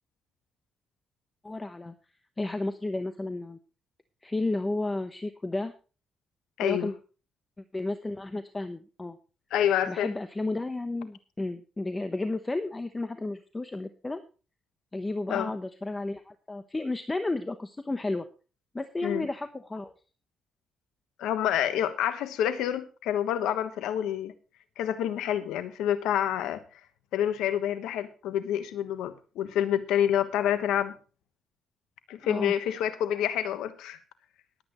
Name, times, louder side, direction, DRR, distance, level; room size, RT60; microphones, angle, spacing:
voice 1, 1.4-1.9 2.4-3.6 4.2-5.7 6.6-6.9 7.7-9.2 9.9-14.2 14.9-18.3 18.7-19.9 32.2-32.5, left 2 dB, 20° left, 9 dB, 0.9 m, -32 dB
voice 2, 6.6-6.9 9.5-10.1 15.3-15.5 19.0-19.3 21.2-24.3 24.8-26.6 27.1-30.9 32.1-34.0, left 10 dB, 90° left, 11 dB, 1.3 m, -28 dB
20.5 x 8.7 x 3.1 m, 0.35 s
cardioid pair, 90°, 0 cm